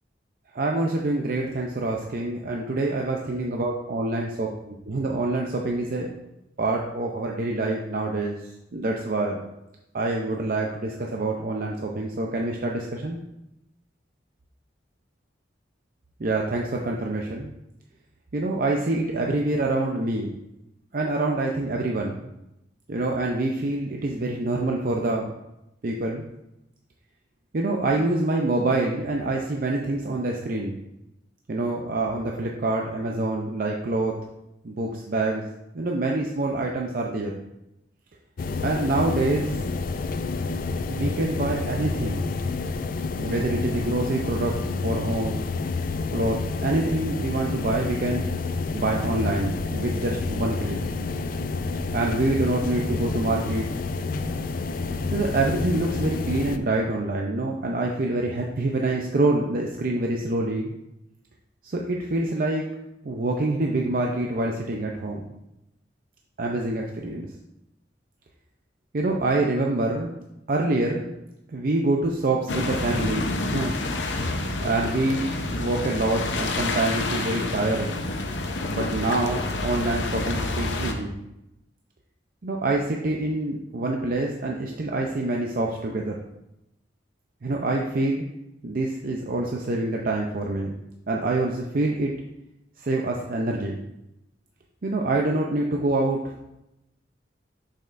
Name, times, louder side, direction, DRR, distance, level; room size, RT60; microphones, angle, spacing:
voice 1, 0.5-6.1 6.6-8.4 8.7-9.4 9.9-13.2 16.2-17.5 18.3-20.3 20.9-22.3 22.9-25.3 25.8-26.2 27.5-30.8 31.5-34.1 34.6-35.4 35.7-37.3 38.6-39.6 40.9-42.2 43.2-44.6 44.8-45.4 46.1-48.3 48.7-50.8 51.9-53.7 55.1-60.7 61.6-62.7 63.0-65.2 66.4-67.3 68.9-70.1 70.5-71.1 71.5-73.8 74.6-77.9 78.7-81.2 82.4-86.1 87.4-88.2 88.6-90.7 91.1-92.1 92.8-93.8 94.8-96.2, right 2 dB, 50° right, 0 dB, 0.5 m, -26 dB
sound 1, 38.4-56.6, left 3 dB, 50° left, 0.4 m, -29 dB
sound 2, 72.5-80.9, left 2 dB, 85° left, 0.7 m, -28 dB
6.6 x 6.4 x 2.5 m, 0.88 s
head